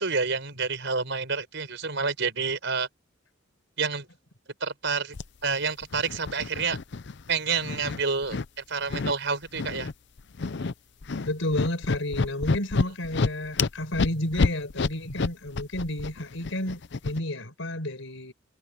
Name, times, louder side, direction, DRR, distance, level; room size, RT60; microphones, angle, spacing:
voice 1, 0.0-2.9 3.8-4.1 4.6-5.2 5.4-6.8 7.3-9.9, right 4 dB, 60° right, 6.0 m, -28 dB
sound 1, 5.1-5.2 5.8-7.3 7.6-8.5 8.9-9.1 9.5-9.9 10.2-10.7 11.0-17.2, left 4 dB, 60° left, 0.6 m, -28 dB
voice 2, 11.2-18.3, left 1 dB, 75° left, 4.7 m, -31 dB
head